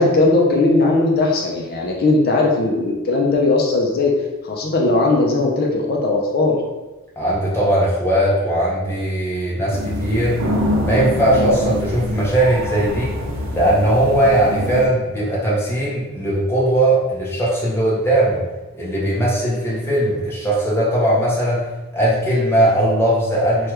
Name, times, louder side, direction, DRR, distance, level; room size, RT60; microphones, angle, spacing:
voice 1, 0.0-4.1 4.4-6.6, left 2 dB, 45° left, 0 dB, 0.4 m, -18 dB
voice 2, 7.2-10.4 10.8-13.1 13.5-18.5 18.7-21.6 21.9-23.7, right 1 dB, 10° left, -6 dB, 0.7 m, -19 dB
sound 1, 9.7-14.9, left 1 dB, 65° right, 0.5 m, -25 dB
3.3 x 2.3 x 2.9 m, 1.1 s
head